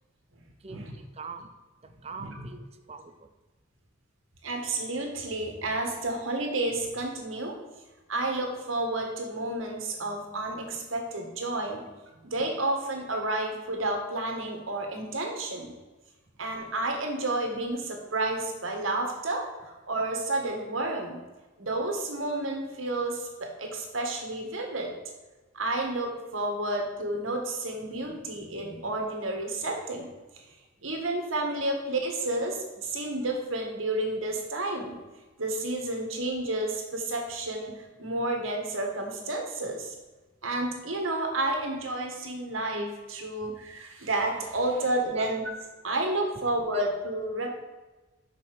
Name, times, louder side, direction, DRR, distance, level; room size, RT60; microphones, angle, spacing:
voice 1, 0.6-1.5 1.8-3.3 27.9-28.0 28.6-28.9 45.2-45.3 46.7-46.8, right 4 dB, 30° right, 8 dB, 0.6 m, -44 dB
voice 2, 4.4-7.6 8.1-11.9 12.2-15.7 16.4-21.2 21.6-24.9 25.5-30.1 30.8-34.9 35.4-39.9 40.4-45.5 45.8-47.5, right 2 dB, 85° right, 2 dB, 1.7 m, -31 dB
5.8 x 5.6 x 6.6 m, 1.2 s
head